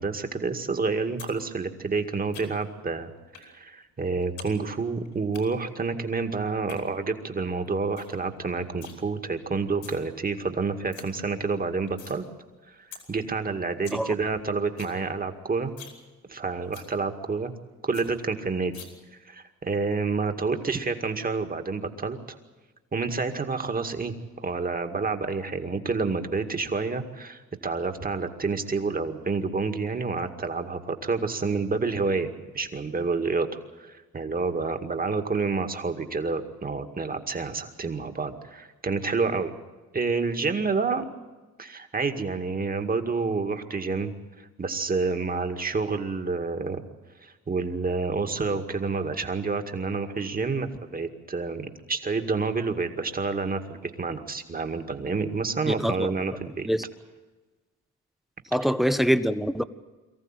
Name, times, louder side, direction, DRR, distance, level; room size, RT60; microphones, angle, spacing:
voice 1, 0.0-3.1 3.4-12.3 12.7-12.8 13.1-15.7 16.3-17.5 17.8-18.8 19.2-22.4 22.9-32.3 32.5-33.5 33.8-39.5 39.9-41.0 41.6-46.8 47.2-56.7, right 4 dB, 30° right, 2.1 m, -29 dB
sound 1, 1.2-1.4 1.6-2.8 3.3-3.5 3.8-4.5 4.8-5.4 6.5-6.8 7.3-7.4 7.7-7.8 8.0-8.2 8.4-9.0 9.6-10.0 10.4-10.5 10.7-11.0 11.4-12.2 12.5-12.6 12.9-13.0 13.4-13.5 13.7-14.0 14.3-14.4 14.6-15.0 15.3-15.4 15.7-16.0 16.3-16.4 16.7-16.9 17.3-17.4 17.6-17.7 17.9-18.1 18.7-18.9, left 7 dB, 80° left, 4.9 m, -45 dB
voice 2, 55.7-56.1 56.6-56.8 58.5-59.6, equal, ahead, 1.0 m, -24 dB
23.5 x 14.5 x 9.1 m
cardioid pair, 90°, 30 cm